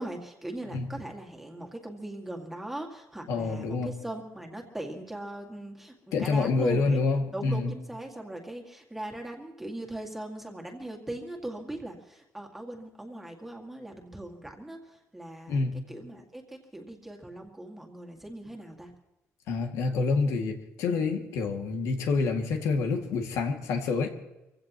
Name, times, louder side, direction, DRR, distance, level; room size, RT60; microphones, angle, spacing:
voice 1, 0.0-6.8 7.3-18.9, right 1 dB, 5° right, 0 dB, 2.1 m, -39 dB
voice 2, 3.3-3.9 6.1-7.7 15.5-15.8 19.5-24.1, left 4 dB, 85° left, 3 dB, 2.2 m, -27 dB
25.0 x 16.5 x 3.0 m, 0.97 s
cardioid pair, 165°, 5 cm